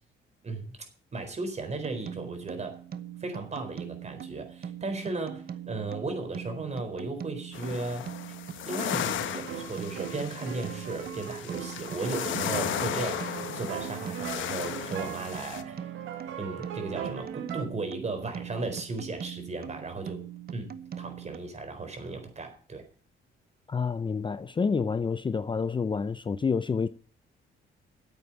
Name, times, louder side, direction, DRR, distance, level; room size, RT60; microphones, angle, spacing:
voice 1, 0.4-0.8 1.1-2.8 3.2-8.3 8.6-15.9 16.4-20.2 20.5-22.8, right 3 dB, 35° right, 4.1 m, -36 dB
sound 1, 1.8-21.4, right 9 dB, 50° right, 1.0 m, -42 dB
sound 2, 7.5-15.6, left 11 dB, 75° left, 1.1 m, -35 dB
sound 3, 9.5-17.7, right 9 dB, 85° right, 1.8 m, -39 dB
voice 2, 23.7-26.9, left 5 dB, 25° left, 0.5 m, -28 dB
9.5 x 8.2 x 8.9 m
cardioid pair, 90°, 20 cm